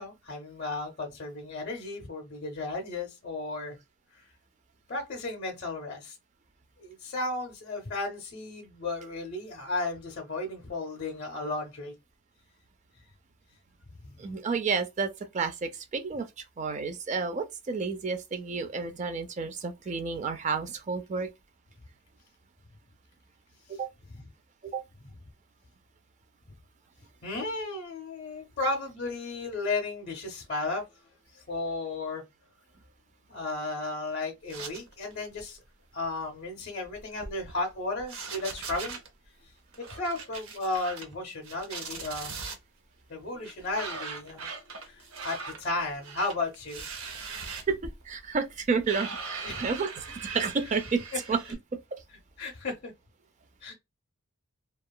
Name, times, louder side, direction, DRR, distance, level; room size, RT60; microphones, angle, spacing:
voice 1, 0.0-3.8 4.1-4.2 4.9-6.2 6.8-11.9 27.2-30.8 31.5-32.2 33.3-35.6 35.9-39.0 39.8-42.4 43.1-44.5 44.8-46.8 49.4-49.7 52.4-52.9 53.6-53.7, left 2 dB, 45° left, 0.6 m, -34 dB
voice 2, 14.2-16.3 16.6-21.3 23.7-23.9 24.6-24.8 47.5-47.8 48.1-51.0 51.3-51.4, right 5 dB, 30° right, 0.3 m, -31 dB
sound 1, 34.5-35.1 35.4-35.6 36.8-37.7 38.0-39.1 39.7-41.1 41.4-42.6 43.4-51.5, right 5 dB, 70° right, 0.6 m, -40 dB
2.8 x 2.3 x 2.2 m
head